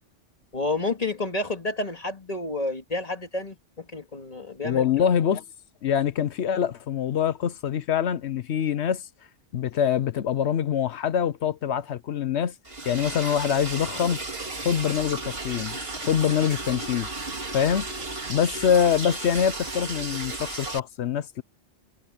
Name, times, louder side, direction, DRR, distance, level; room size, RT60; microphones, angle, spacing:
voice 1, 0.5-5.1, left 2 dB, 30° left, 2.5 m, -30 dB
voice 2, 4.6-5.4 5.8-9.0 9.5-12.5 12.8-14.2 14.6-17.1 17.5-17.9 18.3-21.4, left 8 dB, 65° left, 1.0 m, -24 dB
Liquid, 12.7-20.8, right 3 dB, 55° right, 2.8 m, -34 dB
omnidirectional pair, 1.2 m